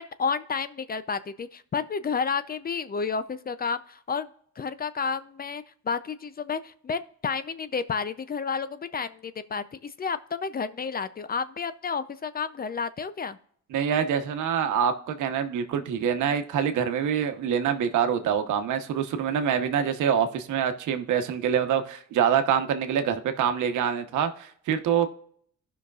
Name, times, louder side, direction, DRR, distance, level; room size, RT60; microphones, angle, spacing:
voice 1, 0.0-4.3 4.6-13.4, left 5 dB, 30° left, 0.5 m, -31 dB
voice 2, 13.7-25.1, right 8 dB, 80° right, 1.0 m, -25 dB
16.0 x 5.8 x 2.4 m
cardioid pair, 90°, 30 cm